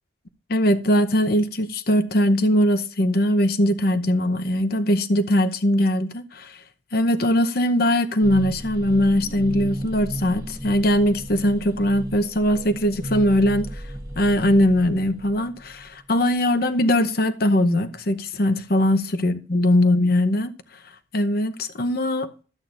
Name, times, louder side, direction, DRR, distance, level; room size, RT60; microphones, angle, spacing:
voice 1, 0.5-6.6 6.9-13.8 14.2-20.8 21.1-22.3, left 1 dB, 50° left, 0.8 m, -21 dB
sound 1, 8.2-16.3, right 1 dB, 20° right, 1.3 m, -35 dB
12.5 x 8.5 x 2.6 m
head